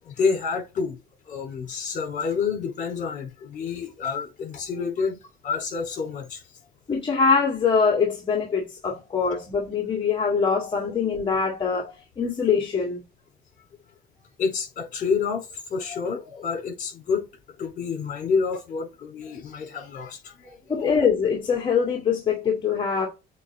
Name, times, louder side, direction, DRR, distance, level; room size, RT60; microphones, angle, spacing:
voice 1, 0.0-1.0 1.3-5.2 5.4-6.4 14.4-17.3 17.6-20.9, left 5 dB, 50° left, 4.3 m, -28 dB
voice 2, 6.9-13.0 20.7-23.1, left 5 dB, 30° left, 2.0 m, -23 dB
8.2 x 2.9 x 3.9 m
cardioid pair, 110°, 17 cm